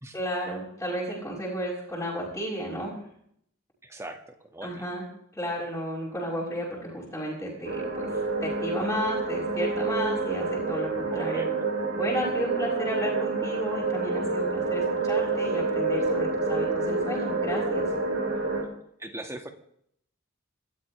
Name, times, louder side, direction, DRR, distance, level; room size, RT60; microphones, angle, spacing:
voice 1, 0.1-3.0 4.6-5.0 5.3-8.1 8.4-11.5 11.9-17.9, equal, 10° left, -8 dB, 6.5 m, -32 dB
voice 2, 3.8-4.9 11.1-11.5 18.3-18.4 19.0-19.5, right 1 dB, 15° right, 5 dB, 1.9 m, -40 dB
sound 1, 7.6-18.6, right 3 dB, 60° right, 4.9 m, -28 dB
29.5 x 13.5 x 3.4 m, 0.69 s
head